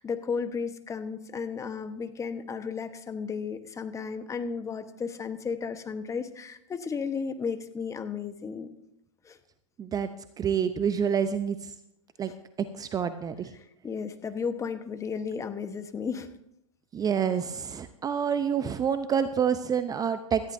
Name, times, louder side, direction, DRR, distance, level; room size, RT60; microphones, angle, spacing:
voice 1, 0.0-8.7 9.2-9.4 12.3-12.4 13.8-16.3, left 5 dB, 20° left, 9 dB, 1.1 m, -34 dB
voice 2, 10.4-11.6 12.2-12.3 12.8-13.5 16.9-20.4, right 7 dB, 20° right, 11 dB, 0.6 m, -27 dB
17.5 x 13.5 x 2.7 m, 0.78 s
hypercardioid pair, 105°, 17 cm